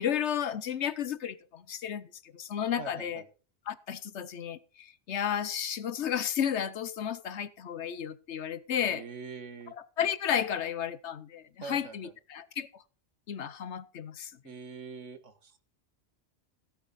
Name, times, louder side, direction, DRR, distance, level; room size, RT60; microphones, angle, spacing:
voice 1, 0.0-3.2 3.7-9.0 10.0-12.8 13.3-14.3, left 9 dB, 65° left, 1.0 m, -33 dB
voice 2, 2.8-3.3 8.9-9.7 11.6-12.1 14.4-15.6, right 5 dB, 70° right, 1.7 m, -44 dB
16.5 x 9.0 x 4.1 m
omnidirectional pair, 1.3 m